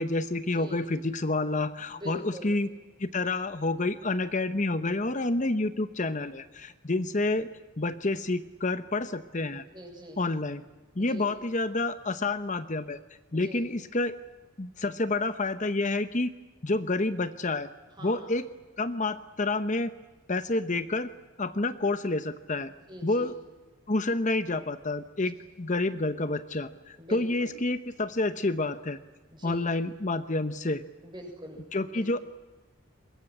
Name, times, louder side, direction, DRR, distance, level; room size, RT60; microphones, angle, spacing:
voice 1, 0.0-2.7 3.0-7.5 7.8-9.6 10.2-10.6 11.0-13.0 13.3-14.1 14.6-16.3 16.6-17.7 18.0-18.5 18.8-19.9 20.3-21.1 21.4-22.7 23.0-23.3 23.9-29.0 29.4-30.8 31.7-32.2, left 2 dB, 35° left, 11 dB, 0.9 m, -29 dB
voice 2, 1.9-2.5 9.5-10.2 11.0-11.3 13.3-13.6 18.0-18.3 22.9-23.3 25.2-25.3 27.0-27.5 29.3-29.7 31.0-31.6 31.9-32.1, equal, 20° right, 1 dB, 6.8 m, -43 dB
24.5 x 21.5 x 10.0 m, 1.2 s
head